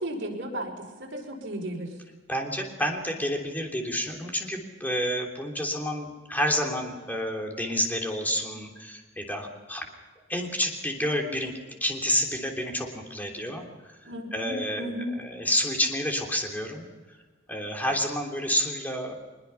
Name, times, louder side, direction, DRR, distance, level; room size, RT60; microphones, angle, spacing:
voice 1, 0.0-2.0 14.0-15.1, right 1 dB, 65° right, 0 dB, 5.6 m, -34 dB
voice 2, 2.3-9.8 10.3-11.5 11.8-17.2 17.5-19.2, equal, 10° left, 1 dB, 3.2 m, -29 dB
24.0 x 21.0 x 5.8 m, 1.3 s
head